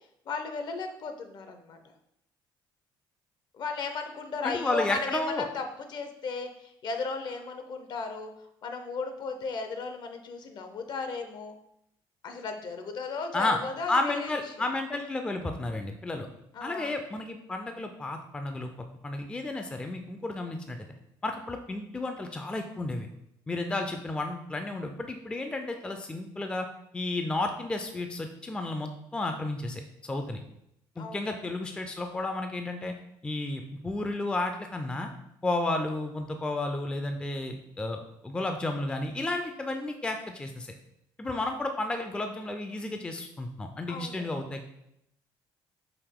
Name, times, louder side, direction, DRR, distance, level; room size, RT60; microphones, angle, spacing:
voice 1, 0.3-1.8 3.5-5.2 5.5-5.6 5.9-8.3 8.6-11.6 12.2-14.7 16.5-17.0 31.0-31.3 43.9-44.4, left 4 dB, 55° left, 6 dB, 0.6 m, -35 dB
voice 2, 4.4-5.4 13.3-13.6 13.9-16.3 16.6-18.7 19.0-20.9 21.2-23.1 23.5-26.7 26.9-30.4 31.0-32.9 33.2-35.1 35.4-40.7 41.2-44.6, left 2 dB, 10° left, 5 dB, 0.3 m, -32 dB
4.9 x 2.8 x 3.6 m, 0.79 s
cardioid pair, 120°, 9 cm